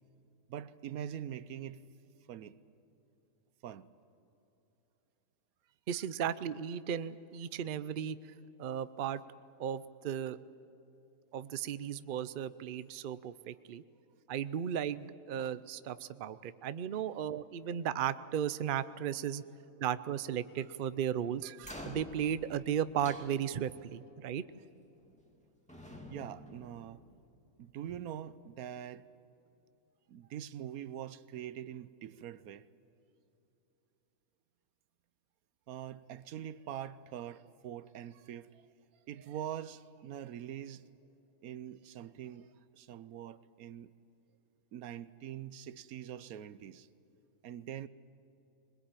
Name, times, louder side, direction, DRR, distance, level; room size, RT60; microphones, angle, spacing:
voice 1, 0.5-1.9 2.3-2.6 3.6-3.9 26.1-27.0 27.6-29.1 30.1-32.7 35.7-38.6 39.1-40.9 41.4-43.9 44.7-46.9 47.4-47.9, right 10 dB, 85° right, 1.2 m, -44 dB
voice 2, 5.9-8.2 8.6-9.2 9.6-10.4 11.3-13.8 14.3-19.4 19.8-24.4, right 9 dB, 50° right, 0.6 m, -35 dB
sound 1, 21.6-23.9 25.0-25.4 25.7-27.4, left 1 dB, 5° left, 2.4 m, -49 dB
21.5 x 21.0 x 9.0 m
omnidirectional pair, 1.5 m